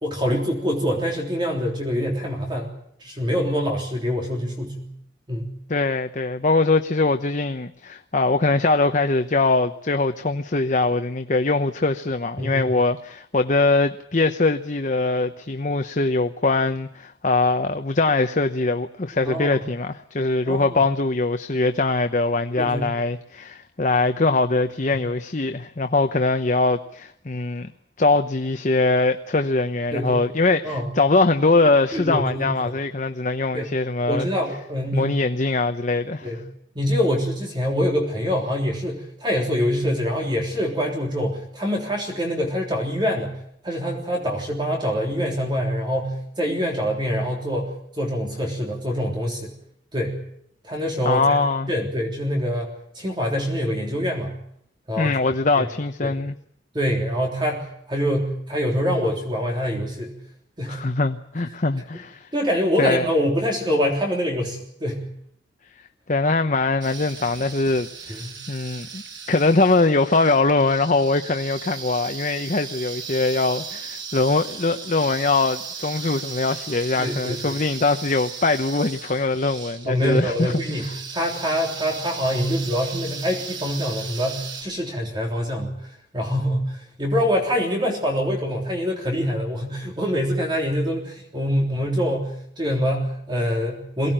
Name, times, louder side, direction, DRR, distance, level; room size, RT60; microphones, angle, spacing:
voice 1, 0.0-2.7 3.0-4.9 5.3-5.6 12.4-12.7 19.2-19.6 20.5-20.8 22.6-22.9 29.9-30.2 30.6-30.9 31.9-32.5 33.5-33.7 34.1-35.2 36.2-36.4 36.8-43.3 43.6-49.5 49.9-50.2 50.6-51.4 51.7-52.7 53.0-54.4 54.9-55.2 55.5-55.7 56.0-56.2 56.7-60.2 60.6-60.8 62.3-65.1 68.1-68.4 77.0-77.6 79.9-85.7 86.1-94.1, equal, 25° right, 3.6 m, -25 dB
voice 2, 5.7-27.7 28.0-34.3 34.9-36.3 51.0-51.7 55.0-56.4 60.7-62.3 62.8-63.1 66.1-69.0 69.3-80.5 80.8-80.9, left 3 dB, 45° left, 0.9 m, -22 dB
sound 1, 66.8-84.6, right 6 dB, 90° right, 6.3 m, -37 dB
23.0 x 17.5 x 8.9 m
head